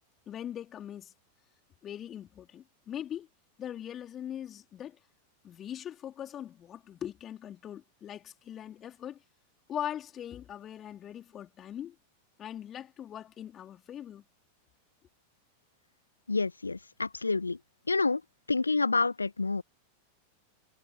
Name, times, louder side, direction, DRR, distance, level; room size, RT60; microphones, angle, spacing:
voice 1, 0.3-1.1 1.8-3.3 3.6-5.0 5.4-9.2 9.7-12.0 12.4-14.2, left 10 dB, 25° left, 4.3 m, -41 dB
voice 2, 16.3-17.6 17.9-18.2 18.5-19.6, left 3 dB, 80° left, 1.2 m, -28 dB
figure-of-eight pair, 90°, 0 cm